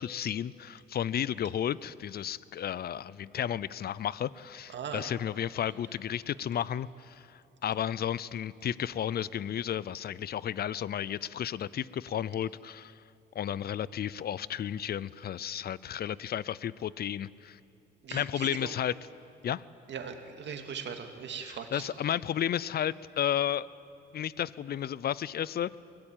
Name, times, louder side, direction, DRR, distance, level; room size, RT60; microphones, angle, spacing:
voice 1, 0.0-13.0 13.3-17.6 18.1-18.9 19.4-19.6 21.4-23.7 24.1-25.8, left 10 dB, 50° left, 20 dB, 0.6 m, -33 dB
voice 2, 4.7-5.1 18.0-18.7 19.9-21.9, right 7 dB, 65° right, 5 dB, 2.3 m, -39 dB
23.0 x 17.0 x 9.2 m, 2.6 s
cardioid pair, 90°, 20 cm